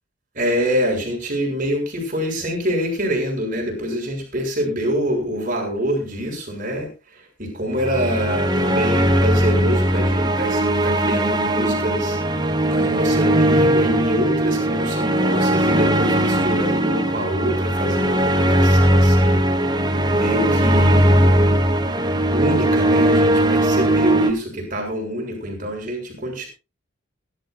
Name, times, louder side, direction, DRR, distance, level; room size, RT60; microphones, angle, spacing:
voice 1, 0.3-12.2 12.7-19.4 20.1-21.6 22.3-26.5, equal, 40° right, 1 dB, 6.8 m, -25 dB
sound 1, 7.8-24.3, right 1 dB, 20° right, 1.3 m, -19 dB
21.5 x 12.0 x 2.5 m, 0.29 s
head